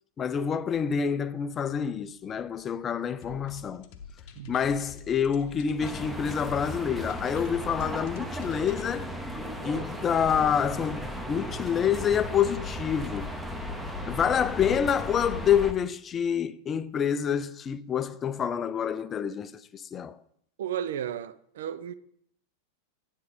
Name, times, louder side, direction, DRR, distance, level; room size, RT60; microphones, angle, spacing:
voice 1, 0.2-3.9 4.5-9.1 9.6-13.3 14.0-20.2, left 8 dB, 25° left, 0.4 m, -27 dB
sound 1, 3.2-8.9, left 6 dB, 45° left, 0.8 m, -48 dB
sound 2, 5.8-15.7, equal, 5° right, 0.9 m, -36 dB
voice 2, 20.6-21.9, right 10 dB, 60° right, 0.4 m, -34 dB
9.5 x 3.7 x 6.6 m
figure-of-eight pair, 90°, 0 cm